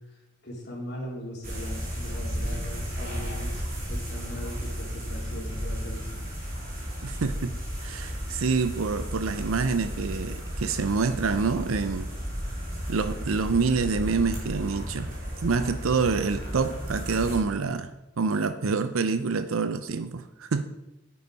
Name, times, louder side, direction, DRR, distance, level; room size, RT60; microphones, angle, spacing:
voice 1, 0.0-3.5 3.9-6.2, left 1 dB, 55° left, -3 dB, 3.5 m, -39 dB
sound 1, 1.4-17.4, equal, 45° right, 3.0 m, -34 dB
voice 2, 7.0-7.5 7.8-12.1 12.9-15.1 15.4-17.9 18.2-20.6, right 4 dB, 90° right, 11 dB, 0.6 m, -27 dB
9.2 x 8.4 x 5.3 m, 0.95 s
head